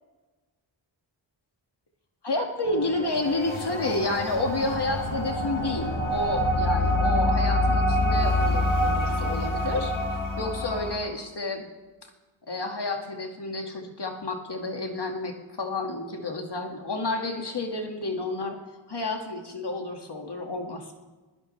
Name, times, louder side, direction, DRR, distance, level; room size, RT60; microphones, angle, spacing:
voice 1, 2.2-9.9 10.4-11.7 12.5-18.6 18.9-20.9, left 2 dB, 60° left, 3 dB, 2.0 m, -30 dB
sound 1, 2.6-11.0, left 1 dB, 90° left, 2.4 m, -26 dB
21.0 x 16.0 x 3.3 m, 1.2 s
wide cardioid pair, 65°, 46 cm